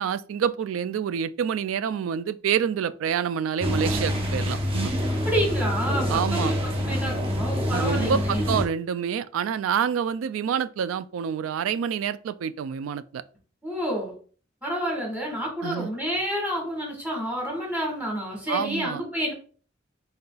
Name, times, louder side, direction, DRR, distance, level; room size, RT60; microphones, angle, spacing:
voice 1, 0.0-4.9 6.1-6.5 7.7-13.2 15.6-15.9 18.5-19.0, right 7 dB, 85° right, 0.3 m, -27 dB
sound 1, 3.6-8.7, equal, 30° right, 0.8 m, -26 dB
voice 2, 5.2-8.4 13.6-14.1 14.6-19.3, equal, 10° right, 1.6 m, -29 dB
4.0 x 3.9 x 2.3 m
head